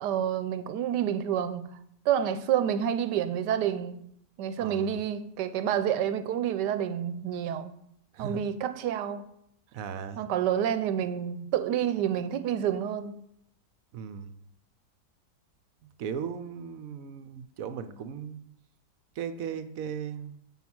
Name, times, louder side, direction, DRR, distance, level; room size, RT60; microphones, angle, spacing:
voice 1, 0.0-1.8 2.0-4.0 4.4-7.7 8.2-9.2 10.2-13.2, right 9 dB, 80° right, 1.3 m, -28 dB
voice 2, 4.6-5.0 8.1-8.4 9.7-10.3 13.9-14.3 16.0-18.4 19.2-20.3, right 7 dB, 65° right, 0.9 m, -37 dB
7.5 x 5.7 x 6.0 m
omnidirectional pair, 1.8 m